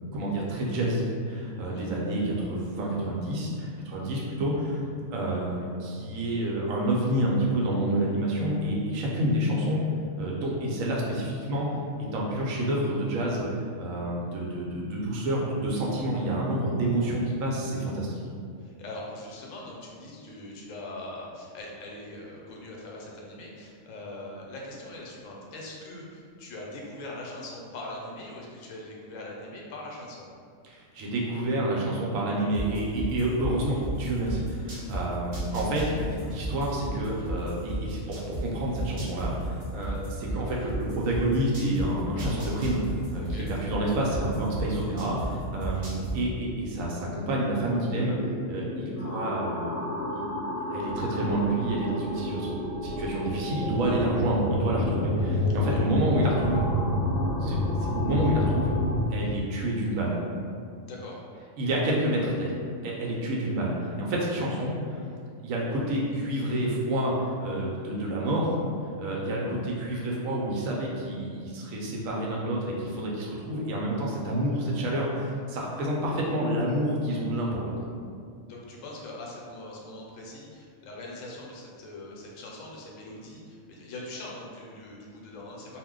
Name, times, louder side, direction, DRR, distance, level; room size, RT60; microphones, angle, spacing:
voice 1, 0.1-4.8 5.1-9.8 10.2-11.7 12.0-13.4 13.8-18.2 30.6-48.1 48.5-49.8 50.1-50.2 50.7-52.5 52.8-56.7 57.4-58.7 59.1-60.2 61.6-65.0 65.4-68.6 69.0-77.8, right 1 dB, 80° right, -3 dB, 1.0 m, -28 dB
voice 2, 18.6-30.3 43.2-43.5 55.5-55.8 60.9-61.2 78.5-85.8, left 1 dB, 75° left, -2 dB, 1.0 m, -42 dB
sound 1, 32.5-35.0 35.3-38.4 38.7-41.8 42.2-45.3 45.6-46.1, right 1 dB, 55° right, 0.4 m, -33 dB
sound 2, 47.1-59.0, left 1 dB, 35° left, 0.8 m, -29 dB
2.5 x 2.1 x 3.6 m, 2.3 s
omnidirectional pair, 1.4 m